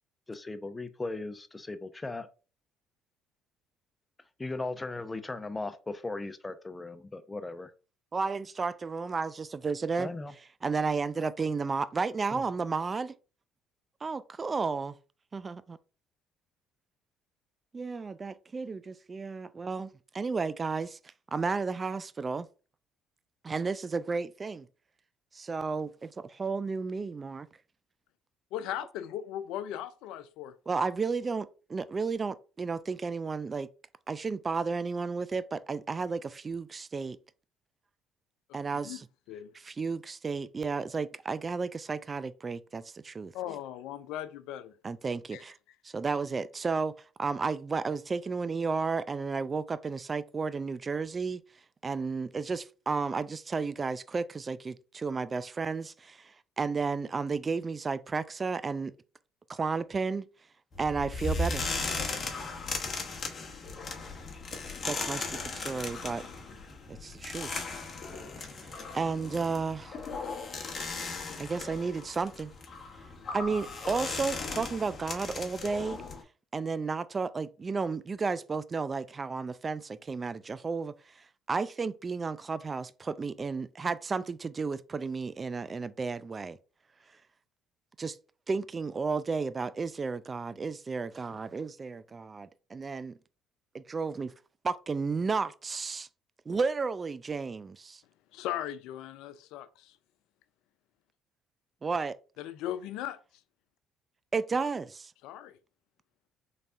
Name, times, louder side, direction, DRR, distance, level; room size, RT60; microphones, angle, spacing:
voice 1, 0.3-2.3 4.4-7.7 10.0-10.3 12.3-12.4, left 2 dB, 20° left, 0.5 m, -37 dB
voice 2, 8.1-10.1 10.6-13.1 14.0-14.9 15.3-15.8 17.7-21.0 21.3-22.5 23.4-24.7 25.3-27.5 30.7-33.7 34.1-37.2 38.5-39.1 39.5-43.3 44.8-45.6 45.8-51.4 51.8-58.9 59.5-60.3 60.8-61.7 64.8-66.2 66.9-67.6 68.4-68.5 68.9-70.0 71.4-72.5 73.3-76.0 76.5-81.1 81.5-86.6 88.0-88.2 88.5-93.2 93.7-94.3 94.6-96.1 96.5-98.0 101.8-102.2 104.3-105.1, right 4 dB, 35° right, 0.3 m, -33 dB
voice 3, 28.5-30.5 38.7-39.0 39.3-39.5 43.3-44.7 45.3-45.4 98.3-100.0 102.4-103.2 105.2-105.6, left 11 dB, 70° left, 0.3 m, -38 dB
sound 1, 60.7-76.2, left 3 dB, 40° left, 0.9 m, -37 dB
4.0 x 3.3 x 2.4 m
hypercardioid pair, 55°, 0 cm